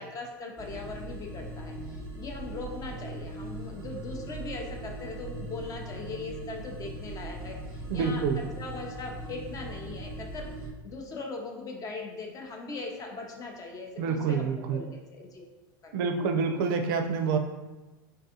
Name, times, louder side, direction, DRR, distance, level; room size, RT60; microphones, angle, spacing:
voice 1, 0.0-15.5 15.8-16.1, left 3 dB, 30° left, 1 dB, 0.5 m, -40 dB
sound 1, 0.6-10.7, right 2 dB, 20° right, 0.6 m, -40 dB
voice 2, 7.9-8.5 14.0-14.8 15.9-17.4, right 5 dB, 65° right, 6 dB, 0.4 m, -27 dB
3.4 x 2.3 x 2.7 m, 1.1 s
hypercardioid pair, 110°, 12 cm